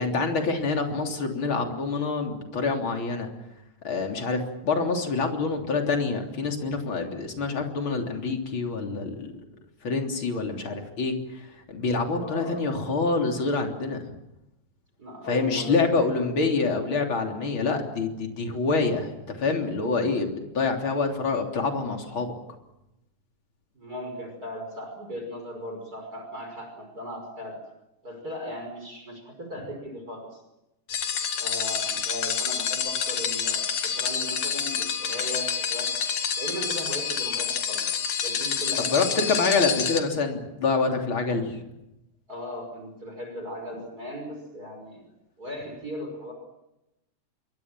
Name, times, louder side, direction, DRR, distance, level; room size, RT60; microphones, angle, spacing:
voice 1, 0.0-3.3 3.8-9.3 9.8-14.0 15.3-22.4 38.8-41.6, left 4 dB, 40° left, 3 dB, 4.0 m, -26 dB
voice 2, 12.1-12.7 15.0-15.8 16.2-16.5 23.7-27.6 28.0-30.4 31.4-36.0 36.4-37.9 38.2-38.9 42.3-45.1 45.4-46.3, equal, 25° right, 4 dB, 6.0 m, -37 dB
sound 1, 30.9-40.0, left 7 dB, 60° left, 3.2 m, -28 dB
26.5 x 24.0 x 7.6 m, 0.91 s
omnidirectional pair, 3.6 m